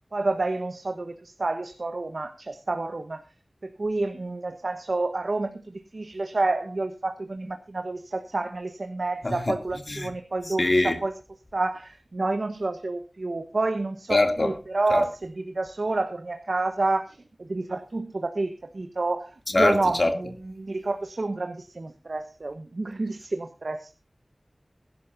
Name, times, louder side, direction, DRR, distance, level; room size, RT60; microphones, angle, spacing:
voice 1, 0.1-3.2 3.8-11.1 11.5-23.9, right 2 dB, 75° right, 1.2 m, -29 dB
voice 2, 10.6-11.0 14.1-14.5 14.9-15.0 19.5-20.1, left 2 dB, 55° left, 2.6 m, -22 dB
21.5 x 11.5 x 2.7 m
wide cardioid pair, 60°, 0 cm